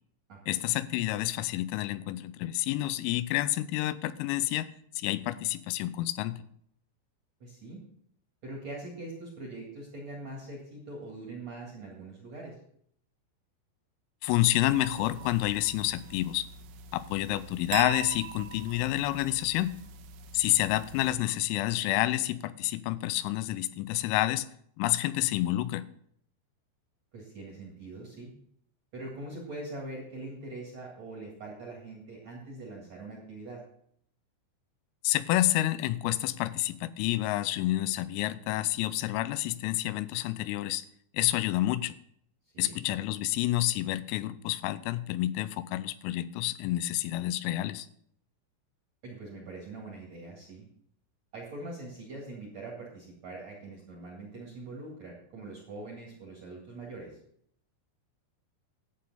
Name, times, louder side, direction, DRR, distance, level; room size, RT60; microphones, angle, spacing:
voice 1, 0.5-4.7 5.0-6.4 14.2-16.5 16.9-19.8 20.3-24.5 24.8-25.9 35.0-40.8 41.1-41.9 42.6-47.9, left 15 dB, 85° left, 15 dB, 3.2 m, -29 dB
voice 2, 7.4-7.8 8.4-12.6 27.1-28.3 28.9-33.6 42.5-42.8 49.0-50.6 51.3-57.1, right 2 dB, 55° right, -3 dB, 2.0 m, -43 dB
sound 1, 14.6-21.2, right 7 dB, 85° right, 3.5 m, -42 dB
11.5 x 8.5 x 4.1 m, 0.67 s
omnidirectional pair, 5.9 m